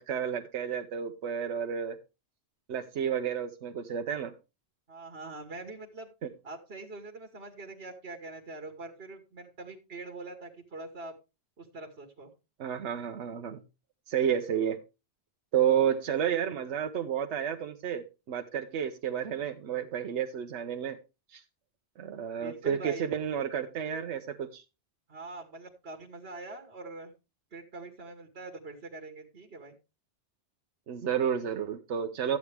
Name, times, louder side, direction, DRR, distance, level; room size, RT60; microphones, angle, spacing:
voice 1, 0.0-2.0 2.7-4.3 6.2-6.3 12.6-13.6 14.1-14.8 15.5-21.0 21.3-21.4 22.0-24.6 30.9-32.4, right 8 dB, 85° right, 1.0 m, -31 dB
voice 2, 4.9-6.1 6.4-11.2 11.6-12.3 22.4-23.1 25.1-27.1 27.5-29.8, right 2 dB, 65° right, 1.6 m, -43 dB
13.5 x 8.4 x 3.3 m
omnidirectional pair, 1.1 m